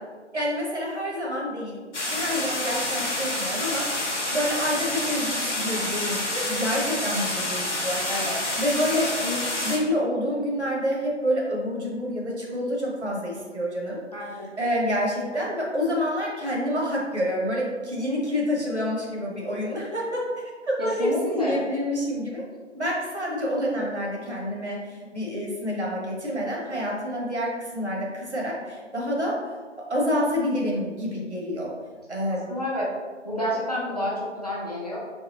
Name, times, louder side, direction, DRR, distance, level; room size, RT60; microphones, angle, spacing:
voice 1, 0.3-3.9 4.3-8.2 8.6-14.0 14.6-20.2 20.6-22.4 22.7-29.4 29.8-31.7 32.1-32.5, equal, 65° right, -3 dB, 1.4 m, -28 dB
sound 1, 1.9-9.8, left 1 dB, 70° left, 1.1 m, -28 dB
voice 2, 8.1-8.4 14.1-14.5 20.8-21.6 32.3-32.9 33.2-35.0, left 1 dB, 35° left, -5 dB, 0.7 m, -29 dB
4.1 x 3.4 x 3.0 m, 1.4 s
figure-of-eight pair, 170°, 37 cm